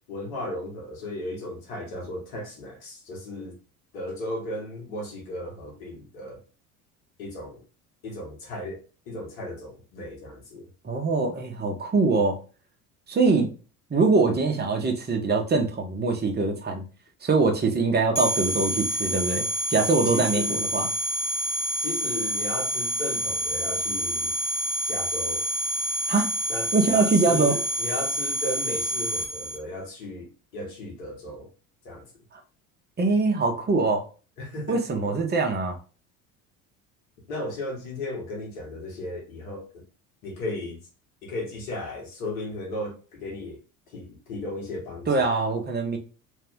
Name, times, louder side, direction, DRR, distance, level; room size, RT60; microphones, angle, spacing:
voice 1, 0.0-3.5 3.9-6.4 7.2-7.6 8.0-10.7 20.1-20.6 21.8-24.3 24.9-25.5 26.5-31.5 31.8-32.1 34.4-34.8 37.3-39.8 40.2-40.8 41.2-43.6 43.9-45.3, left 1 dB, 65° left, 2.1 m, -35 dB
voice 2, 10.8-12.4 13.1-13.5 13.9-16.8 17.2-20.9 26.1-26.3 26.7-27.6 33.0-34.1 34.7-35.8 45.1-46.0, right 3 dB, 20° right, 1.3 m, -23 dB
sound 1, 18.1-29.6, equal, 5° left, 1.8 m, -28 dB
3.6 x 3.3 x 3.6 m
figure-of-eight pair, 65°, 43 cm